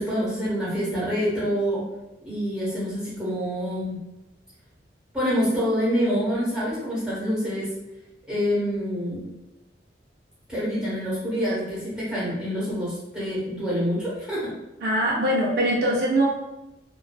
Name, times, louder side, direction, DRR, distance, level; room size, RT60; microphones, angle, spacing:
voice 1, 0.0-1.8 2.2-4.0 5.1-7.7 8.3-9.2 10.5-14.5, equal, 5° right, -9 dB, 0.9 m, -26 dB
voice 2, 14.8-16.3, right 1 dB, 60° right, -3 dB, 0.4 m, -22 dB
2.5 x 2.2 x 2.2 m, 0.95 s
head